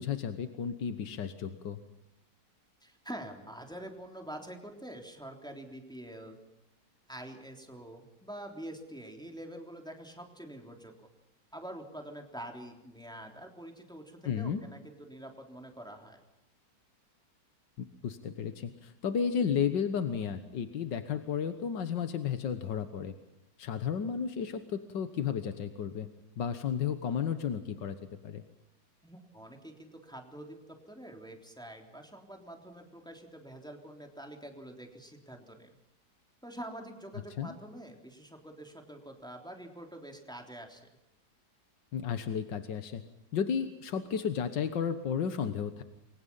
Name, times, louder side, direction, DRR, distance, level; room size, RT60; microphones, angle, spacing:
voice 1, 0.0-1.8 14.3-14.6 18.0-23.1 23.6-26.1 26.4-28.0 28.2-28.4 37.4-37.5 41.9-43.0 43.3-45.8, left 7 dB, 85° left, 9 dB, 2.0 m, -33 dB
voice 2, 2.8-6.4 7.1-10.9 11.5-16.2 29.0-35.8 36.4-40.9, right 1 dB, ahead, 3 dB, 3.4 m, -46 dB
29.0 x 23.0 x 5.6 m, 0.89 s
omnidirectional pair, 1.9 m